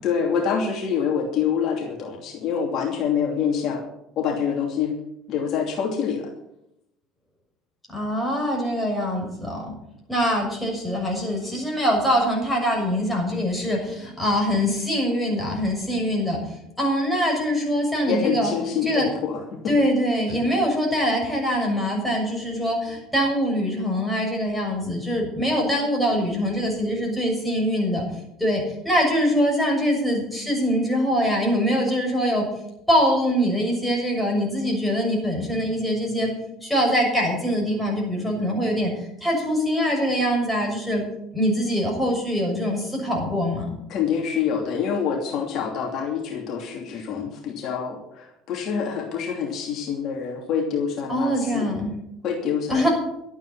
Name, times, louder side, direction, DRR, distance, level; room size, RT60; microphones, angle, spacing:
voice 1, 0.0-3.8 4.2-4.9 5.3-6.3 18.1-19.8 43.9-51.7 52.2-52.9, left 7 dB, 55° left, 1 dB, 2.7 m, -26 dB
voice 2, 7.9-9.7 10.1-16.4 16.8-18.5 18.8-19.1 19.7-28.0 28.4-32.5 32.9-36.3 36.6-38.9 39.2-41.0 41.3-43.7 51.1-51.9 52.7-52.9, equal, 5° left, -1 dB, 6.7 m, -23 dB
12.5 x 9.0 x 8.6 m, 0.80 s
supercardioid pair, 110°, 0 cm